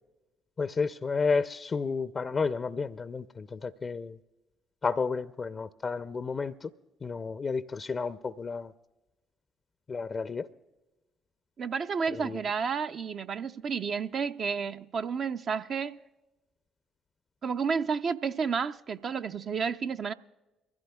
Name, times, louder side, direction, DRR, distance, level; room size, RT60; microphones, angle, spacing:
voice 1, 0.6-4.2 4.8-6.7 7.0-8.7 9.9-10.5 12.1-12.4, left 4 dB, 40° left, 0.5 m, -31 dB
voice 2, 11.6-16.0 17.4-20.1, right 6 dB, 50° right, 0.4 m, -31 dB
23.5 x 15.5 x 2.3 m
hypercardioid pair, 50°, 0 cm